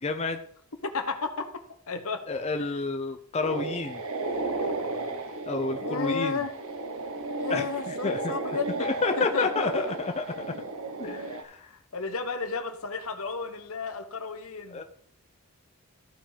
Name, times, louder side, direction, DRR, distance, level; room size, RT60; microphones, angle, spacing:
voice 1, 0.0-0.4 2.3-4.0 5.1-6.4 7.5-8.3 8.8-10.2 11.0-11.7 14.7-14.8, left 3 dB, 30° left, 5 dB, 0.6 m, -30 dB
voice 2, 0.8-2.2 5.8-6.5 7.4-8.9 9.2-9.9 11.0-14.8, left 4 dB, 70° left, 7 dB, 1.3 m, -33 dB
sound 1, 3.4-11.4, right 2 dB, 70° right, 1.2 m, -34 dB
13.5 x 5.1 x 5.1 m, 0.63 s
head